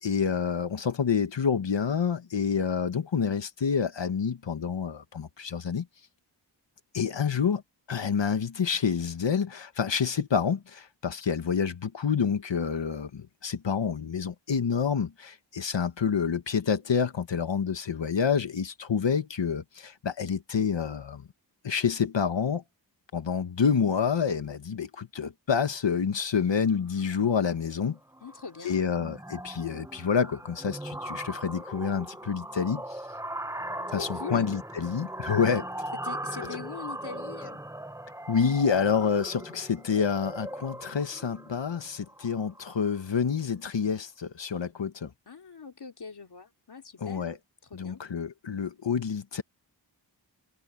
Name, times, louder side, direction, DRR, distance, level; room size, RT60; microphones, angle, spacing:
voice 1, 0.0-5.9 6.9-7.6 7.9-21.3 21.6-22.6 23.1-28.0 28.6-33.0 33.9-35.7 38.3-45.1 47.0-47.4 47.7-49.4, left 6 dB, 80° left, 1.8 m, -28 dB
sound 1, 27.0-27.3 27.6-27.9 28.1-43.0, right 1 dB, 5° right, 0.9 m, -39 dB
voice 2, 28.2-28.8 33.9-34.5 36.0-37.6 45.3-47.4 47.7-48.0, left 5 dB, 65° left, 2.9 m, -42 dB
wide cardioid pair, 110°, 43 cm